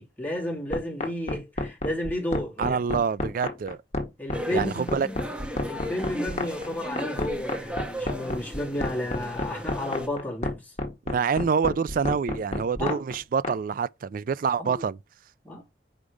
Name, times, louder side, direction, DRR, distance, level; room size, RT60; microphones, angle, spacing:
voice 1, 0.0-2.8 4.2-5.2 5.6-10.7 12.8-13.0 14.6-14.8 15.4-15.6, left 1 dB, 10° left, 2.8 m, -32 dB
sound 1, 0.7-13.5, left 2 dB, 40° left, 1.8 m, -29 dB
voice 2, 2.6-3.8 4.5-5.1 11.1-15.0, right 6 dB, 50° right, 0.3 m, -26 dB
sound 2, 4.3-10.1, equal, 5° right, 1.4 m, -36 dB
5.2 x 4.9 x 6.3 m
head